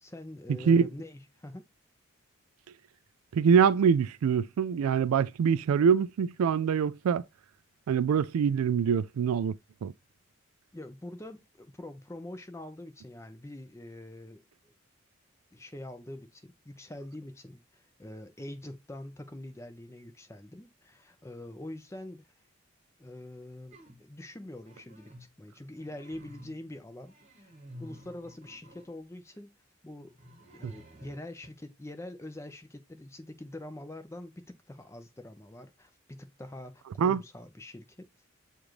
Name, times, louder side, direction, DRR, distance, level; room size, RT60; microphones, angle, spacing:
voice 1, 0.0-1.6 10.7-14.7 15.5-22.3 23.0-27.5 27.8-29.5 29.8-30.1 30.5-38.1, left 1 dB, 15° left, 0.5 m, -44 dB
voice 2, 3.3-7.2 7.9-9.5 9.8-9.9 30.6-30.7 37.0-37.2, right 7 dB, 90° right, 0.3 m, -24 dB
sound 1, 23.7-24.1 24.6-25.3 25.7-26.7 27.0-28.9 30.1-31.5, equal, 35° right, 1.1 m, -52 dB
6.8 x 2.5 x 3.0 m
head